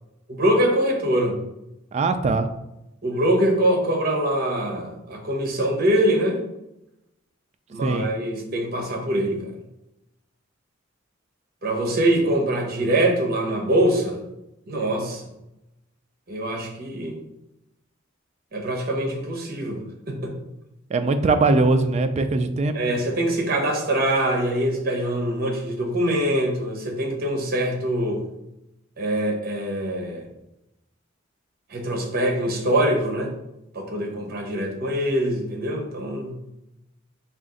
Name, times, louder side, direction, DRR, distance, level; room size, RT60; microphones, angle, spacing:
voice 1, 0.3-1.4 3.0-6.4 7.7-9.5 11.6-14.2 14.7-15.3 16.3-17.2 18.5-19.8 20.1-20.4 22.7-28.2 29.0-30.3 31.7-33.3 33.7-36.4, right 1 dB, 50° right, 0 dB, 0.9 m, -23 dB
voice 2, 1.9-2.5 7.8-8.1 20.9-22.8, right 3 dB, 35° right, 8 dB, 0.3 m, -21 dB
4.2 x 2.5 x 3.7 m, 0.91 s
head